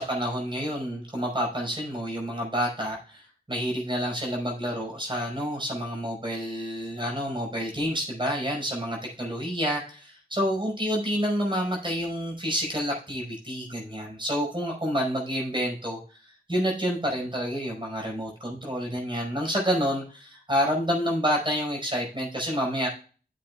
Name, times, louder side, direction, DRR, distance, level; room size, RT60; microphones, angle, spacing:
voice 1, 0.0-22.9, equal, 30° right, -1 dB, 5.3 m, -29 dB
12.5 x 7.8 x 2.4 m, 0.38 s
wide cardioid pair, 45°, 17 cm